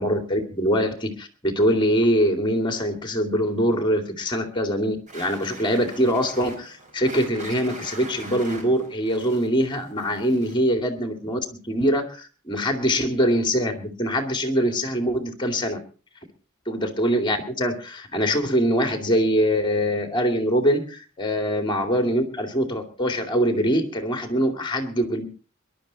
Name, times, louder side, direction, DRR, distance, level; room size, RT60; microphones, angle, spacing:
voice 1, 0.0-15.8 16.7-25.3, equal, 20° left, 6 dB, 2.4 m, -23 dB
sound 1, 5.1-10.7, right 2 dB, 35° right, 4.4 m, -42 dB
22.0 x 11.5 x 4.1 m, 0.36 s
head